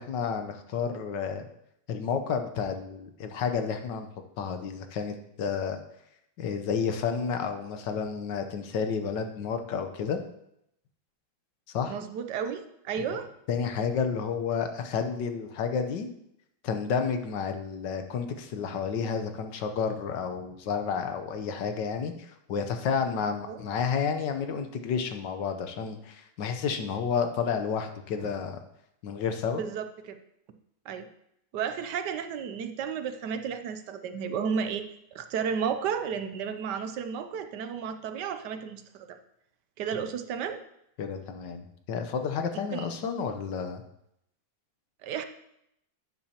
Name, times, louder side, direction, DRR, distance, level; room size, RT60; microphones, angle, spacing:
voice 1, 0.0-1.5 1.9-4.1 4.4-5.8 6.4-10.2 11.7-11.9 13.5-16.1 16.6-28.6 29.0-29.6 41.0-43.8, left 6 dB, 75° left, 7 dB, 1.5 m, -31 dB
voice 2, 11.9-13.3 23.5-23.6 29.5-30.2 30.9-31.1 31.5-34.9 35.1-39.2 39.8-40.6 42.7-42.9 45.0-45.2, right 7 dB, 75° right, 9 dB, 1.3 m, -33 dB
11.5 x 8.6 x 2.9 m, 0.77 s
omnidirectional pair, 1.9 m